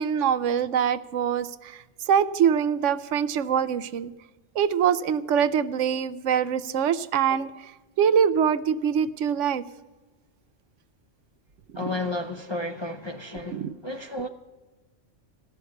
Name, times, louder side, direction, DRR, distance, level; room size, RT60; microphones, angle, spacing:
voice 1, 0.0-4.1 4.6-7.7 8.0-9.6 13.5-13.7, right 8 dB, 75° right, 0.9 m, -24 dB
voice 2, 11.7-14.3, left 2 dB, 30° left, 0.5 m, -32 dB
15.5 x 6.5 x 9.4 m
omnidirectional pair, 1.3 m